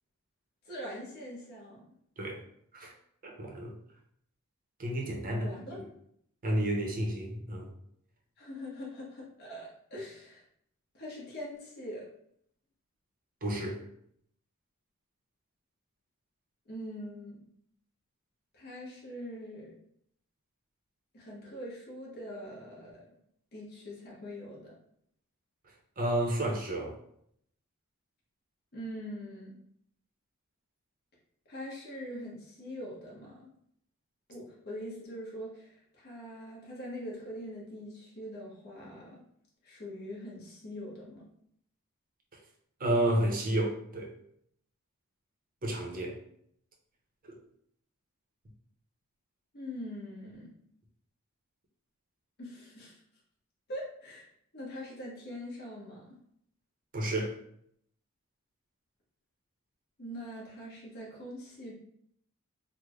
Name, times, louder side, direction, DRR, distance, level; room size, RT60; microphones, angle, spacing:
voice 1, 0.6-1.8 5.4-5.9 8.4-10.4 10.9-12.0 16.7-17.4 18.5-19.7 21.1-23.1 23.5-24.7 28.7-29.6 31.5-33.5 34.3-39.2 39.6-41.3 49.5-50.5 52.4-53.0 53.7-54.3 54.5-56.0 60.0-61.7, equal, 50° left, -4 dB, 0.9 m, -43 dB
voice 2, 3.2-3.7 4.8-5.5 6.4-7.7 13.4-13.8 26.0-27.0 42.8-44.1 45.6-46.2 47.2-47.4 56.9-57.4, right 1 dB, 40° right, 1 dB, 0.7 m, -31 dB
3.2 x 2.1 x 3.5 m, 0.69 s
head